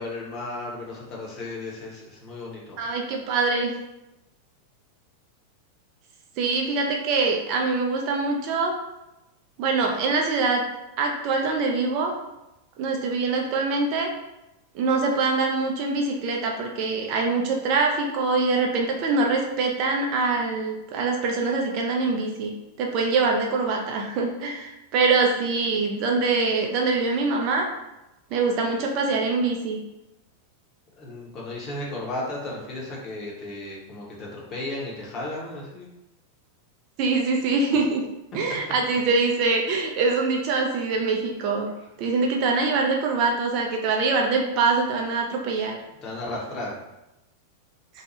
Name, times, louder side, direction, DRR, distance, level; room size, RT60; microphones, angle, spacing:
voice 1, 0.0-2.8 30.9-35.9 46.0-46.8, left 2 dB, 30° left, -3 dB, 0.9 m, -34 dB
voice 2, 2.8-3.7 6.4-8.7 9.6-10.7 11.0-12.1 12.8-14.1 14.7-22.5 22.8-27.7 28.3-29.8 37.0-38.0 38.3-41.7 42.0-45.8, right 3 dB, 40° right, 1 dB, 0.4 m, -24 dB
2.7 x 2.2 x 2.9 m, 0.94 s
figure-of-eight pair, 90°, 0 cm